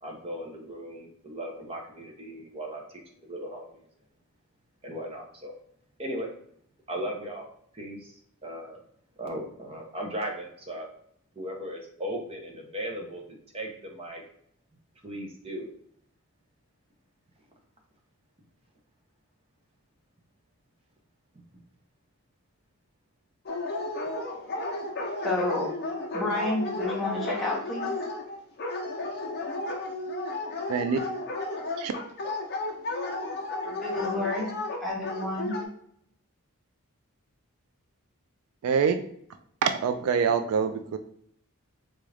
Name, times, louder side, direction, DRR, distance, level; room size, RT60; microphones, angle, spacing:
voice 1, 0.0-3.9 4.8-5.5 6.0-6.3 6.9-7.5 7.7-8.1 8.4-8.8 9.2-10.9 11.4-14.2 15.0-15.7, equal, 25° right, 1 dB, 0.6 m, -37 dB
Dog, 23.5-35.7, left 2 dB, 45° left, 0.6 m, -33 dB
voice 2, 25.2-25.7 26.1-27.9 33.6-34.5 34.8-35.5, left 2 dB, ahead, -5 dB, 0.9 m, -30 dB
voice 3, 30.7-31.0 31.8-31.9 38.6-39.0 39.6-41.0, right 6 dB, 70° right, 8 dB, 0.3 m, -25 dB
3.8 x 2.4 x 3.2 m, 0.66 s
head